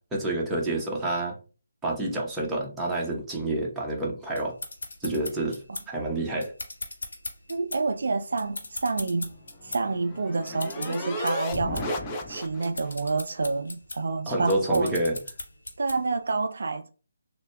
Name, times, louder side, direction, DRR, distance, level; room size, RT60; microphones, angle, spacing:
voice 1, 0.1-1.4 1.8-4.5 5.0-6.5 14.3-15.2, right 1 dB, 5° right, 0.8 m, -28 dB
sound 1, 4.3-16.2, left 2 dB, 60° left, 1.1 m, -40 dB
voice 2, 7.5-9.3 9.6-11.9 12.3-15.0 15.8-16.9, right 3 dB, 60° right, 0.3 m, -28 dB
sound 2, 9.3-12.9, left 1 dB, 20° left, 0.6 m, -34 dB
6.3 x 2.2 x 2.2 m
figure-of-eight pair, 150°, 0 cm